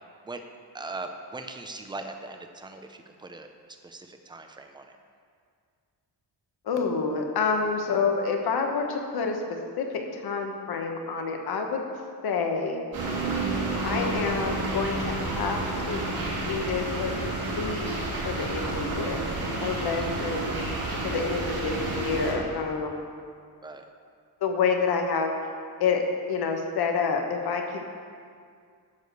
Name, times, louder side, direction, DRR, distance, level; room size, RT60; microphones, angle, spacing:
voice 1, 0.7-3.5 3.8-4.9 20.0-20.3 23.6-23.9, right 3 dB, 10° right, 5 dB, 0.4 m, -40 dB
voice 2, 6.6-9.4 9.8-11.8 12.2-12.8 13.8-16.0 16.4-18.0 18.2-19.2 19.5-20.5 21.0-23.0 24.4-25.3 25.8-26.0 26.3-27.8, left 5 dB, 65° left, 3 dB, 1.2 m, -28 dB
sound 1, 12.9-22.3, right 2 dB, 60° right, 2.6 m, -30 dB
11.0 x 4.8 x 6.6 m, 2.2 s
wide cardioid pair, 180°, 41 cm